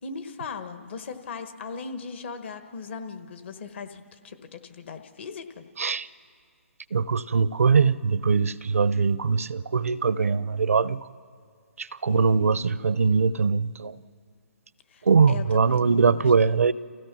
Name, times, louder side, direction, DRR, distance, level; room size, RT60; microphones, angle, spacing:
voice 1, 0.0-5.7 12.0-12.7 14.9-16.2, left 5 dB, 55° left, 8 dB, 1.4 m, -38 dB
voice 2, 6.9-11.1 11.8-14.0 15.1-16.7, right 5 dB, 85° right, 17 dB, 0.6 m, -22 dB
28.0 x 15.5 x 6.0 m, 2.1 s
hypercardioid pair, 145°, 8 cm